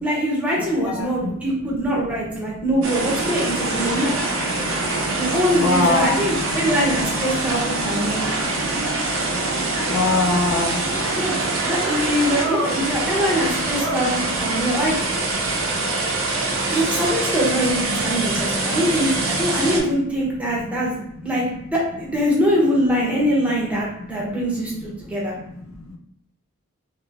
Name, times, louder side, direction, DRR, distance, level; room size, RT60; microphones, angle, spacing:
voice 1, 0.0-4.2 5.2-8.2 11.1-11.3 11.7-14.9 15.2-15.5 16.7-25.3, equal, 5° right, -4 dB, 0.9 m, -23 dB
voice 2, 0.6-1.1 5.5-6.2 9.9-10.8, left 3 dB, 85° left, 2 dB, 0.6 m, -21 dB
sound 1, 2.8-19.8, right 2 dB, 80° right, 0.7 m, -24 dB
2.9 x 2.9 x 2.6 m, 0.75 s
head